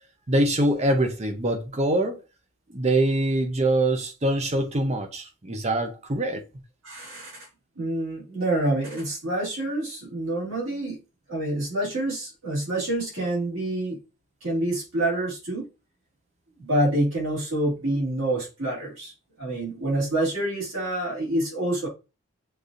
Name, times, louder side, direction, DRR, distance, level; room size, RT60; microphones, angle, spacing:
voice 1, 0.3-2.2 2.7-6.4, right 1 dB, 30° right, 0.6 m, -24 dB
voice 2, 6.8-7.5 7.8-11.0 11.3-14.0 14.4-15.6 16.6-19.1 19.4-21.9, right 1 dB, 60° right, 2.3 m, -27 dB
6.5 x 2.7 x 2.5 m
head